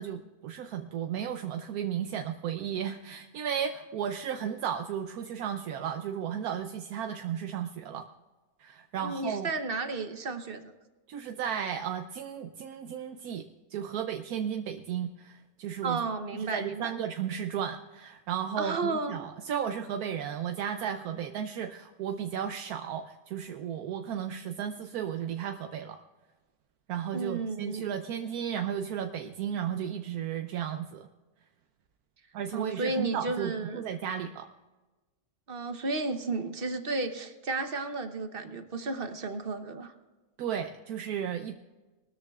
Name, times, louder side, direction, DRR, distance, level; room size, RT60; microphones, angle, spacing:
voice 1, 0.0-8.1 8.6-9.5 11.1-16.0 16.3-26.0 26.9-31.1 32.3-34.5 40.4-41.5, right 8 dB, 80° right, 6 dB, 1.1 m, -34 dB
voice 2, 9.0-10.7 15.8-16.9 18.6-19.2 27.1-27.9 32.5-33.8 35.5-39.9, right 3 dB, 45° right, 7 dB, 1.0 m, -33 dB
21.0 x 13.0 x 2.4 m, 1.2 s
omnidirectional pair, 1.6 m